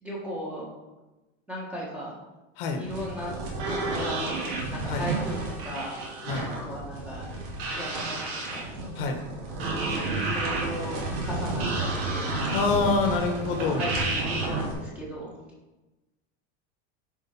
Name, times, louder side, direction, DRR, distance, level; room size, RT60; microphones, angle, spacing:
voice 1, 0.0-0.7 1.5-2.1 2.7-3.3 3.6-6.1 6.4-7.4 7.7-8.7 9.8-12.3 12.8-13.0 13.6-15.3, equal, 5° right, -5 dB, 1.3 m, -37 dB
sound 1, 2.8-14.7, right 2 dB, 60° right, 2.5 m, -31 dB
voice 2, 12.5-13.8, left 4 dB, 55° left, 4 dB, 1.3 m, -26 dB
10.0 x 4.7 x 4.4 m, 1.1 s
supercardioid pair, 180°, 34 cm